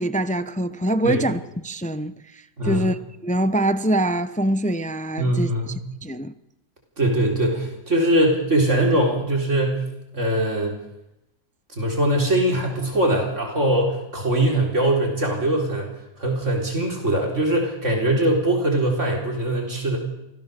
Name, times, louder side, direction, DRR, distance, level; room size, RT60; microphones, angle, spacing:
voice 1, 0.0-3.0 3.2-5.7 6.0-6.3, right 1 dB, 10° left, 0.5 m, -24 dB
voice 2, 2.6-2.9 5.2-5.8 7.0-9.8 10.1-10.7 11.8-15.9 16.2-20.0, right 1 dB, 55° right, 4.2 m, -21 dB
25.0 x 17.0 x 6.8 m
omnidirectional pair, 1.5 m